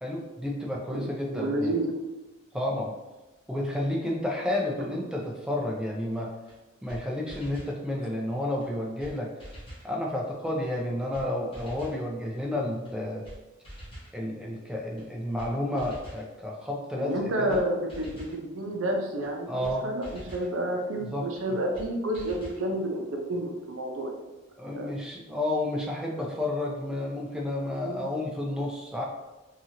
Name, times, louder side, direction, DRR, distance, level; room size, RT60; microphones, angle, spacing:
voice 1, 0.0-1.7 2.5-2.9 3.5-6.3 6.8-9.3 9.8-13.2 14.1-17.6 19.5-19.9 21.1-21.6 24.6-29.0, left 1 dB, 5° right, -2 dB, 0.3 m, -31 dB
voice 2, 0.9-2.0 4.8-4.9 17.0-24.2 24.7-24.9 27.8-28.0, right 1 dB, 90° right, 2 dB, 0.5 m, -30 dB
sound 1, 6.5-6.6 6.9-7.0 7.3-7.8 8.6-8.7 9.0-9.1 9.4-9.9 10.7-10.8 11.1-11.3 11.5-12.0 12.8-12.9 13.2-13.4 13.6-14.1 15.0-15.1 15.4-15.5 15.8-16.3 17.1-17.2 17.5-17.6 17.9-18.4 19.2-19.3 19.6-19.8 20.0-20.5 21.3-21.4 21.7-21.9 22.1-22.6, equal, 25° left, 0.7 m, -44 dB
2.8 x 2.4 x 2.8 m, 1.1 s
head